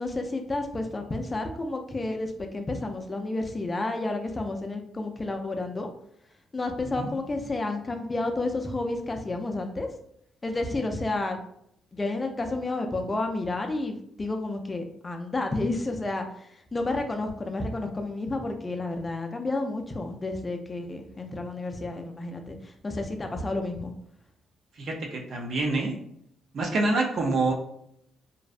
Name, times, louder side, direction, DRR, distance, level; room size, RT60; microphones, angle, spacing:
voice 1, 0.0-5.9 6.5-9.9 10.4-11.4 11.9-23.9, left 2 dB, 25° left, 4 dB, 0.4 m, -31 dB
voice 2, 24.8-25.9 26.5-27.5, right 2 dB, 60° right, 1 dB, 0.5 m, -26 dB
2.6 x 2.0 x 2.4 m, 0.73 s
cardioid pair, 90°, 0 cm